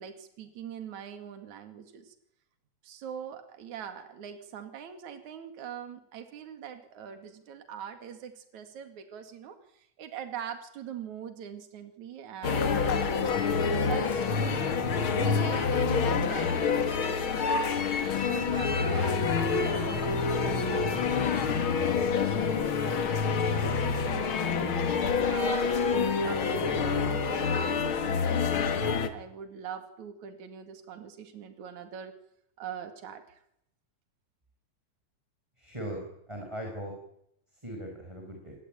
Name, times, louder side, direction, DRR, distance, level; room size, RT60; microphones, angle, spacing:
voice 1, 0.0-2.2 2.8-13.0 13.7-14.7 15.1-17.6 18.1-24.7 25.3-32.1 32.6-33.4, right 8 dB, 70° right, 8 dB, 3.7 m, -42 dB
sound 1, 12.4-29.1, left 5 dB, 45° left, 2.4 m, -27 dB
voice 2, 35.6-36.9 37.6-38.5, right 1 dB, 10° right, 1 dB, 5.0 m, -39 dB
28.0 x 21.5 x 9.0 m, 0.77 s
omnidirectional pair, 3.6 m